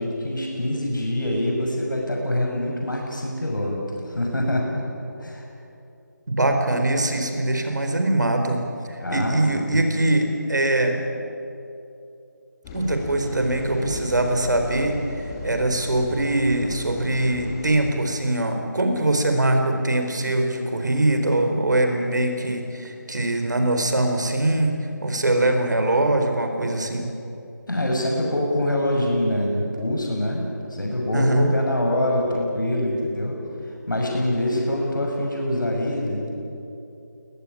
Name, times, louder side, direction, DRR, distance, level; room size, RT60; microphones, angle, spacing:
voice 1, 0.0-4.8 5.2-5.4 9.0-9.8 27.7-30.4 30.7-33.4 33.9-36.3, left 1 dB, 85° left, -1 dB, 6.6 m, -25 dB
voice 2, 6.3-11.0 12.7-27.1 31.1-31.5, right 1 dB, 70° right, 5 dB, 4.4 m, -22 dB
sound 1, 12.6-17.9, left 2 dB, 15° left, 1.5 m, -35 dB
22.5 x 18.5 x 10.0 m, 2.8 s
figure-of-eight pair, 170°, 10 cm